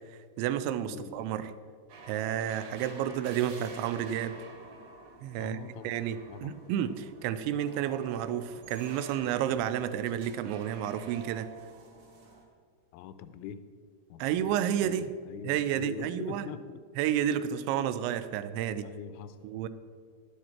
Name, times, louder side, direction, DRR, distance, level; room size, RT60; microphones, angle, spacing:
voice 1, 0.4-1.5 2.1-4.4 5.2-11.5 14.2-15.1 15.4-16.5 17.0-18.9 19.4-19.7, right 10 dB, 85° right, 13 dB, 2.9 m, -31 dB
sound 1, 1.9-12.4, right 3 dB, 55° right, 2.5 m, -50 dB
voice 2, 5.4-6.0 6.3-6.6 9.2-9.3 12.9-13.7 14.1-14.5 14.8-15.0 15.2-16.8 18.8-19.4, left 8 dB, 90° left, 11 dB, 3.0 m, -43 dB
12.0 x 10.0 x 4.4 m, 2.1 s
omnidirectional pair, 5.2 m